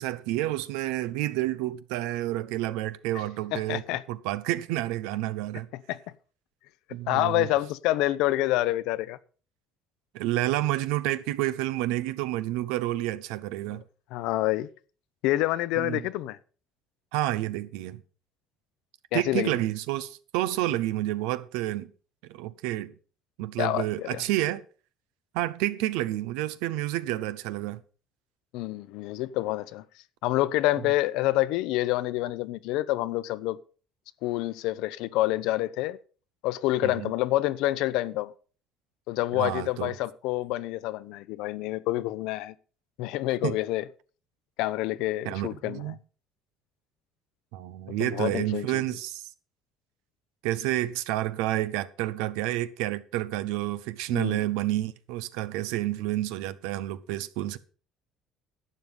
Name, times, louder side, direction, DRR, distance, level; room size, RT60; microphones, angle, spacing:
voice 1, 0.0-3.8 4.1-5.7 6.9-7.5 10.1-13.8 15.8-16.1 17.1-18.0 19.1-21.9 22.3-22.9 23.4-24.6 25.3-27.8 36.8-37.1 39.3-39.9 43.4-43.6 45.2-46.0 47.5-49.2 50.4-57.6, right 15 dB, 90° right, 0.7 m, -29 dB
voice 2, 3.5-4.0 5.7-6.0 7.1-9.2 13.7-13.8 14.1-14.7 15.2-16.4 19.1-19.5 23.6-24.2 28.5-29.8 30.2-33.6 34.2-36.0 36.4-38.3 39.1-42.5 43.0-43.8 44.6-46.0 48.0-48.8 54.1-54.4, left 16 dB, 80° left, 0.7 m, -27 dB
11.5 x 8.0 x 5.4 m
cardioid pair, 115°, 0 cm